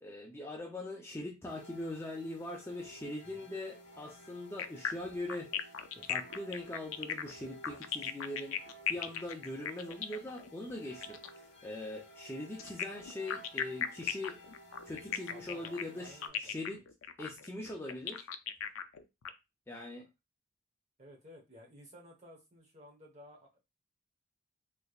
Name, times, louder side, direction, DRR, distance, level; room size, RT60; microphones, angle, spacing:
voice 1, 0.0-5.7 6.0-8.6 8.9-14.4 14.9-16.8 17.2-18.3 19.7-20.1, left 1 dB, 10° left, -1 dB, 0.5 m, -42 dB
sound 1, 1.5-16.3, right 1 dB, 55° left, 1.0 m, -55 dB
sound 2, 4.6-11.4 12.6-19.3, left 8 dB, 80° left, 0.4 m, -37 dB
voice 2, 15.3-16.8 19.9-20.0 21.0-23.6, equal, 35° right, -1 dB, 1.1 m, -55 dB
3.3 x 3.2 x 2.3 m, 0.24 s
head